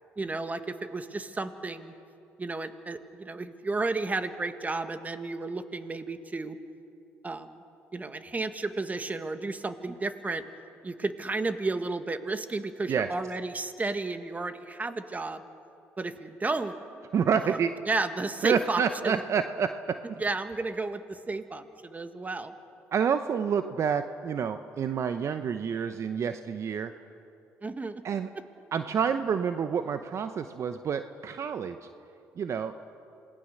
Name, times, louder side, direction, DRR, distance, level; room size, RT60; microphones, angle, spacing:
voice 1, 0.2-1.9 2.4-6.6 7.2-7.5 7.9-10.4 10.8-15.5 16.0-16.8 17.4-17.6 17.9-19.2 20.2-22.5 27.6-28.0, right 3 dB, 25° right, 9 dB, 1.7 m, -32 dB
voice 2, 17.1-17.7 18.4-20.2 22.9-26.9 28.0-28.3 28.7-31.8 32.4-32.7, right 7 dB, 55° right, 9 dB, 0.9 m, -28 dB
27.5 x 19.5 x 6.6 m, 2.6 s
hypercardioid pair, 60°, 6 cm